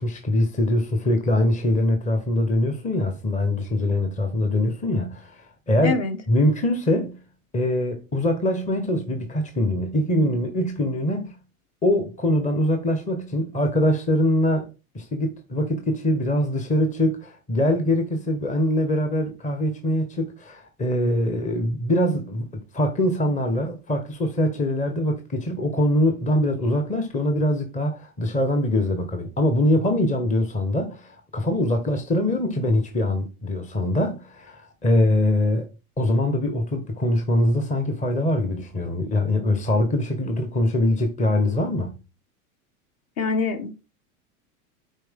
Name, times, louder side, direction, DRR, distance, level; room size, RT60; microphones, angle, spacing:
voice 1, 0.0-6.0 6.3-7.2 7.5-11.4 11.8-14.7 14.9-35.7 36.0-42.0, left 1 dB, 15° left, 1.3 m, -23 dB
voice 2, 5.8-6.2 43.2-43.7, left 4 dB, 35° left, 1.6 m, -24 dB
9.0 x 4.7 x 3.7 m
hypercardioid pair, 105°, 43 cm